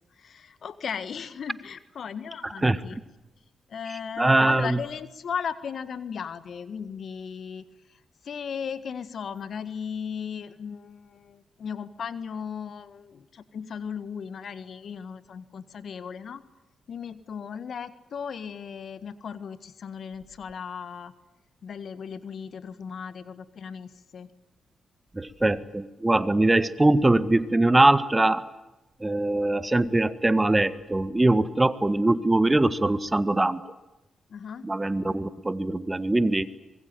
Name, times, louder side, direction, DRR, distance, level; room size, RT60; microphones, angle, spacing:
voice 1, 0.2-3.0 3.7-16.4 16.9-21.1 21.6-24.3 34.3-34.7, left 7 dB, 65° left, 14 dB, 1.7 m, -36 dB
voice 2, 4.2-4.8 25.1-28.5 29.0-33.6 34.6-36.5, right 2 dB, 20° right, 14 dB, 1.7 m, -22 dB
25.0 x 21.5 x 9.3 m, 1.0 s
hypercardioid pair, 45°, 0 cm